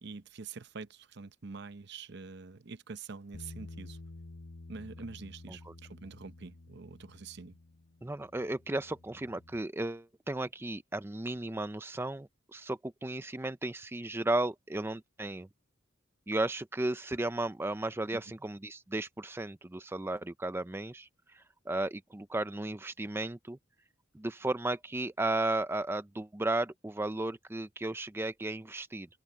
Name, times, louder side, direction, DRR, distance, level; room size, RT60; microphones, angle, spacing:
voice 1, 0.0-4.0 4.7-7.6 18.1-18.2, right 4 dB, 60° right, 0.8 m, -46 dB
Bass guitar, 3.3-9.6, left 2 dB, 55° left, 0.9 m, -50 dB
voice 2, 8.0-15.5 16.3-23.6 24.1-29.1, right 2 dB, 10° right, 0.5 m, -34 dB
open air
head